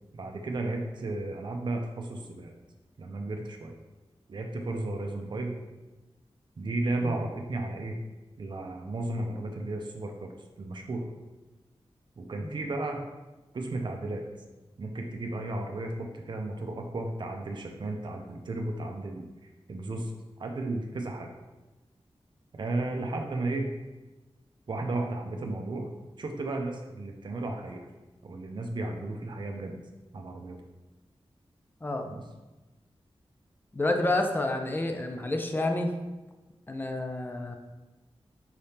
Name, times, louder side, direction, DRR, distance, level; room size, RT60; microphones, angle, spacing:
voice 1, 0.1-2.5 3.0-3.8 4.3-5.5 6.6-8.0 8.4-10.3 10.6-11.1 12.2-13.0 13.5-14.2 14.8-19.2 19.7-20.1 20.4-21.3 22.5-23.7 24.7-25.9 26.2-27.9 28.2-29.8 30.1-30.6 32.1-32.2, right 2 dB, 50° right, 2 dB, 0.5 m, -34 dB
voice 2, 33.7-35.9 36.7-37.6, left 2 dB, 20° left, 4 dB, 0.4 m, -29 dB
4.8 x 3.4 x 2.8 m, 1.1 s
wide cardioid pair, 115°, 10 cm